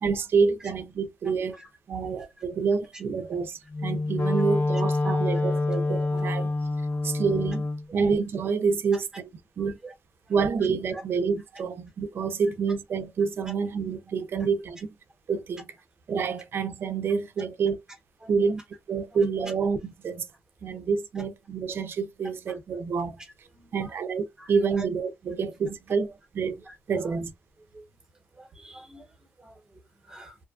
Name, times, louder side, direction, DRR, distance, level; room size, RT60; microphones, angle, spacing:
voice 1, 0.0-1.6 1.9-6.5 7.0-7.7 7.9-9.1 9.6-9.8 10.3-14.9 15.3-15.7 16.1-17.8 18.3-18.6 18.9-20.3 20.6-23.2 23.7-27.3, right 5 dB, 60° right, 0.5 m, -28 dB
Wind instrument woodwind instrument, 3.7-7.8, left 2 dB, 65° left, 1.2 m, -26 dB
voice 2, 9.6-9.9 10.3-10.4 10.9-11.0 18.2-18.3 21.1-21.2 22.5-22.6 23.2-24.0 24.4-24.8 26.6-27.2 27.7-27.8 28.3-30.5, right 2 dB, 15° right, 1.0 m, -47 dB
2.7 x 2.3 x 2.3 m
cardioid pair, 110°, 4 cm